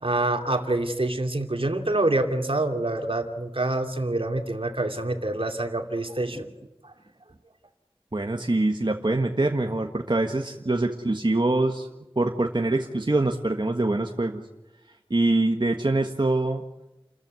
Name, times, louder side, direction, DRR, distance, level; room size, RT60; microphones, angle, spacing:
voice 1, 0.0-6.5, right 2 dB, 70° right, 5 dB, 2.7 m, -26 dB
voice 2, 8.1-11.9 12.1-14.4 15.1-16.6, right 2 dB, 50° right, 4 dB, 1.6 m, -24 dB
29.5 x 14.0 x 9.5 m, 1.0 s
wide cardioid pair, 45°, 10 cm